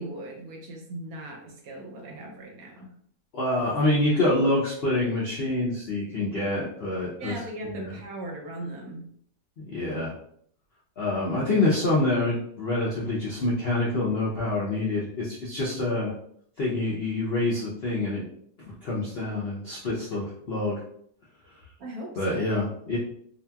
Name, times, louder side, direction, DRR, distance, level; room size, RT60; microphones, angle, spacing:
voice 1, 0.0-2.9 7.2-9.1 21.8-22.5, right 1 dB, 70° right, 1 dB, 1.0 m, -38 dB
voice 2, 3.3-7.4 7.7-7.9 9.7-10.1 11.0-16.1 16.6-18.2 18.6-20.8 22.2-23.0, left 2 dB, 65° left, -6 dB, 0.6 m, -26 dB
2.8 x 2.6 x 2.2 m, 0.64 s
omnidirectional pair, 1.8 m